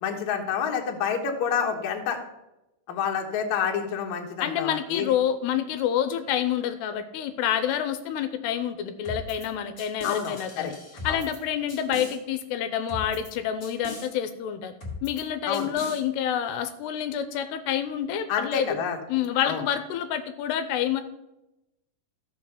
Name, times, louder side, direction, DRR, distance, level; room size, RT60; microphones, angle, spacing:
voice 1, 0.0-2.2 2.9-5.1 10.0-10.7 11.1-11.2 15.5-15.7 18.3-19.0 19.4-19.6, left 7 dB, 60° left, 3 dB, 2.1 m, -28 dB
voice 2, 4.4-10.7 11.0-14.7 15.0-18.8 19.1-21.0, left 9 dB, 85° left, 9 dB, 2.7 m, -28 dB
sound 1, 9.0-9.5 9.8-11.4 11.7-12.2 12.9-13.3 13.6-14.1 14.8-15.2 15.5-16.0, left 3 dB, 30° left, 1.8 m, -39 dB
13.5 x 6.8 x 5.8 m, 0.92 s
omnidirectional pair, 4.9 m